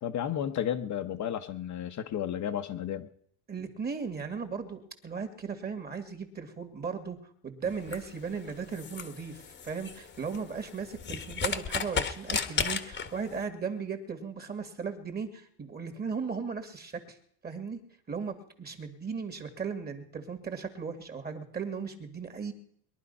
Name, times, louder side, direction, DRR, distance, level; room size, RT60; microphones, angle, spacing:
voice 1, 0.0-3.1, left 10 dB, 40° left, 5 dB, 1.1 m, -32 dB
voice 2, 3.5-7.2 7.4-17.2 17.4-17.8 18.1-22.5, right 5 dB, 20° right, 8 dB, 2.2 m, -37 dB
sound 1, 7.7-13.4, left 6 dB, 25° left, 1.4 m, -35 dB
21.5 x 11.5 x 5.5 m, 0.65 s
supercardioid pair, 130°, 46 cm